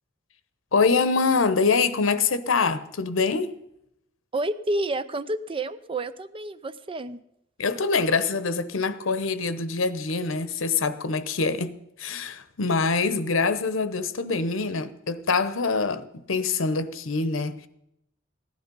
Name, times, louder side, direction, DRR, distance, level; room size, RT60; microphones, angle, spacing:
voice 1, 0.7-3.5 7.6-17.7, left 4 dB, 85° left, 0.9 m, -25 dB
voice 2, 4.3-7.2, right 2 dB, 25° right, 0.6 m, -29 dB
15.5 x 11.0 x 5.4 m
head